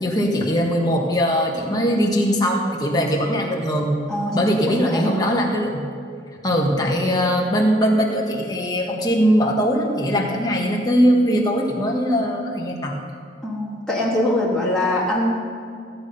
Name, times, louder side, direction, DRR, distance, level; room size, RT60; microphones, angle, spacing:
voice 1, 0.0-3.9 4.3-5.9 6.4-13.0, equal, 20° left, -1 dB, 1.5 m, -20 dB
voice 2, 13.4-15.3, left 1 dB, 5° left, -7 dB, 1.9 m, -22 dB
14.5 x 8.7 x 5.5 m, 2.3 s
head